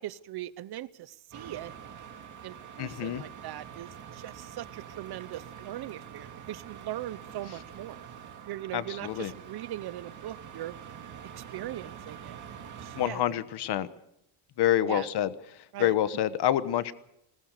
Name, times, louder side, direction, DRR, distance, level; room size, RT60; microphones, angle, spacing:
voice 1, 0.0-1.7 2.4-8.1 8.5-10.8 11.4-13.4 14.8-15.1 15.7-15.9, right 13 dB, 55° right, 18 dB, 0.8 m, -40 dB
sound 1, 1.3-13.1, right 8 dB, 40° right, 2.3 m, -45 dB
voice 2, 2.8-3.2 8.7-9.3 12.9-13.9 14.6-16.9, left 12 dB, 55° left, 14 dB, 1.2 m, -27 dB
21.0 x 19.0 x 6.6 m, 0.81 s
cardioid pair, 175°, 47 cm